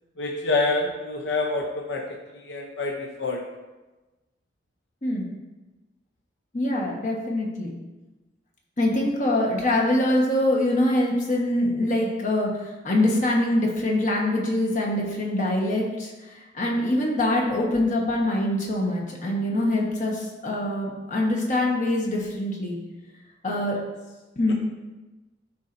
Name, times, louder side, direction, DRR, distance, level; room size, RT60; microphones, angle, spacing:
voice 1, 0.2-2.0 2.3-3.4, left 3 dB, 65° left, 0 dB, 0.7 m, -27 dB
voice 2, 6.5-7.7 8.8-12.6 12.8-16.1 16.5-22.8 23.4-23.8 24.4-24.5, left 1 dB, 45° left, -2 dB, 1.3 m, -24 dB
12.0 x 4.2 x 2.6 m, 1.1 s
head